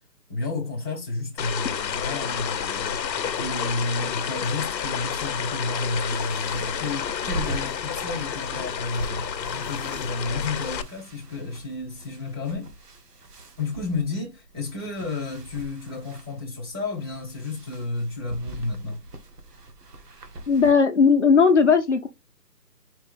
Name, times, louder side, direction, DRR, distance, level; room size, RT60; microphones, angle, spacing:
voice 1, 0.3-3.0 3.3-12.7 13.6-19.0, left 3 dB, 15° right, 0.7 m, -31 dB
sound 1, 1.4-10.8, left 8 dB, 85° left, 0.7 m, -30 dB
sound 2, 5.1-20.7, right 2 dB, 65° right, 1.4 m, -41 dB
voice 2, 20.5-22.1, left 5 dB, 45° left, 0.6 m, -17 dB
4.4 x 2.9 x 3.7 m
hypercardioid pair, 165°, 50 cm